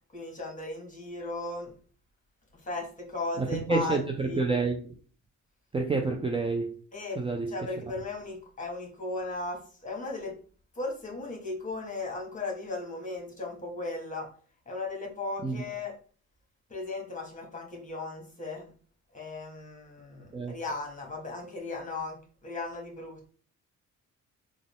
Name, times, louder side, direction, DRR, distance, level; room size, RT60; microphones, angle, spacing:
voice 1, 0.1-1.7 2.6-4.4 6.9-7.2 7.5-10.4 10.7-14.3 14.7-15.9 16.7-18.7 19.1-23.3, left 2 dB, 25° left, 1.7 m, -36 dB
voice 2, 3.4-4.9 5.7-6.7 7.2-7.5 15.4-15.6 20.3-20.5, right 3 dB, 20° right, 0.5 m, -28 dB
3.8 x 2.4 x 3.6 m
cardioid pair, 90°, 30 cm